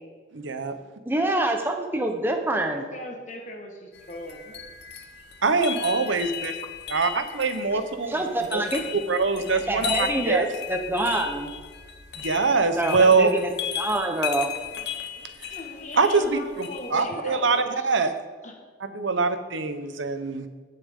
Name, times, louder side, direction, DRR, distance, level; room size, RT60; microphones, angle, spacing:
voice 1, 0.3-0.7 5.4-6.6 6.9-8.1 8.5-8.6 8.9-10.5 12.2-13.3 15.4-15.6 16.0-18.1 18.8-20.5, right 4 dB, 75° right, 9 dB, 0.9 m, -23 dB
voice 2, 1.0-2.8 8.1-8.8 9.7-11.5 12.8-13.5 13.8-14.5, right 1 dB, 10° right, 4 dB, 0.9 m, -26 dB
voice 3, 2.7-4.6 15.2-17.9 18.4-18.5, left 1 dB, 40° left, 2 dB, 1.6 m, -39 dB
sound 1, 3.9-17.0, left 10 dB, 55° left, 0.8 m, -36 dB
18.0 x 6.8 x 3.7 m, 1.5 s
head